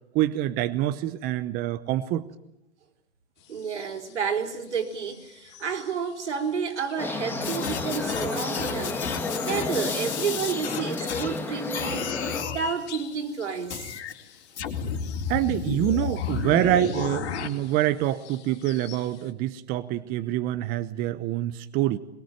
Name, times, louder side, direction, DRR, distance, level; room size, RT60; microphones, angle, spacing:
voice 1, 0.1-2.2 15.3-22.0, right 13 dB, 25° right, 0.9 m, -26 dB
sound 1, 3.4-19.3, left 11 dB, 30° left, 2.5 m, -48 dB
voice 2, 3.5-12.1 12.4-13.9, right 6 dB, 80° right, 4.4 m, -31 dB
sound 2, 7.0-12.4, left 3 dB, 5° left, 1.6 m, -32 dB
sound 3, 7.4-11.4 11.7-12.6 13.7-14.1 14.6-17.5, left 7 dB, 70° left, 3.9 m, -32 dB
22.5 x 22.0 x 9.2 m
hypercardioid pair, 135°, 35 cm